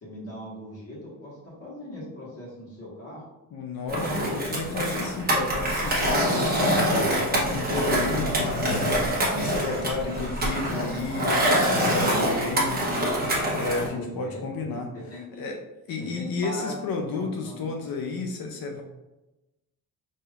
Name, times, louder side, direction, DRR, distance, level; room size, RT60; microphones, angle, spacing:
voice 1, 0.0-3.2 7.0-7.8 9.7-10.2 13.9-14.7 14.9-15.4 16.0-16.8 17.1-17.7, left 1 dB, 40° left, -6 dB, 1.4 m, -40 dB
voice 2, 3.5-12.9 13.5-15.6 15.9-18.8, left 3 dB, 80° left, 3 dB, 0.6 m, -32 dB
Skateboard, 3.9-13.9, equal, 25° right, 0.9 m, -25 dB
4.9 x 2.8 x 2.4 m, 0.99 s
wide cardioid pair, 170°, 35 cm